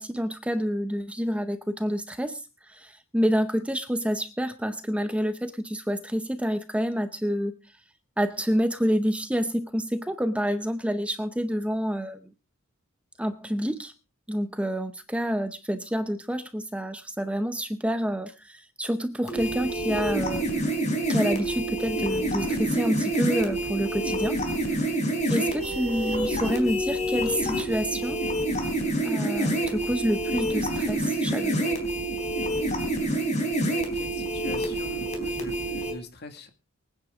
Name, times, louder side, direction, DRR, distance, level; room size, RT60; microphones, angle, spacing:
voice 1, 0.0-7.5 8.2-12.3 13.2-13.9 14.3-20.6 21.1-24.4 24.7-24.8 25.3-28.2 29.0-31.6, equal, 5° right, 10 dB, 0.6 m, -28 dB
sound 1, 19.3-35.9, right 1 dB, 35° left, 4.0 m, -27 dB
voice 2, 33.9-36.5, left 2 dB, 50° left, 7 dB, 1.9 m, -42 dB
24.0 x 9.5 x 3.6 m, 0.32 s
head